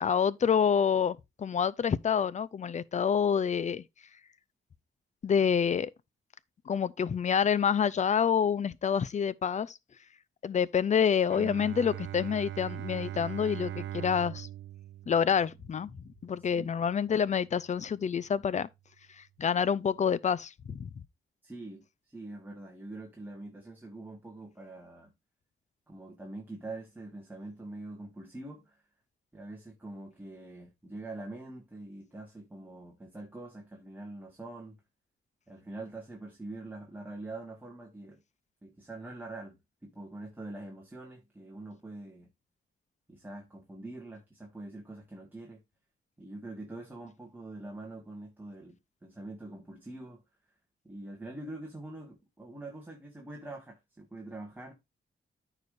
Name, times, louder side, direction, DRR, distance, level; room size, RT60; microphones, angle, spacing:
voice 1, 0.0-3.8 5.2-5.9 6.7-9.8 10.4-14.5 15.1-15.9 16.2-18.7 19.2-20.9, left 7 dB, 35° left, 0.5 m, -27 dB
Bowed string instrument, 11.3-17.0, right 13 dB, 70° right, 0.4 m, -41 dB
voice 2, 21.4-25.1 25.9-28.8 29.3-34.8 35.5-38.2 38.6-42.3 43.1-45.6 46.2-50.2 50.8-54.7, right 2 dB, 10° right, 1.7 m, -44 dB
14.0 x 5.0 x 2.5 m
wide cardioid pair, 175°, 21 cm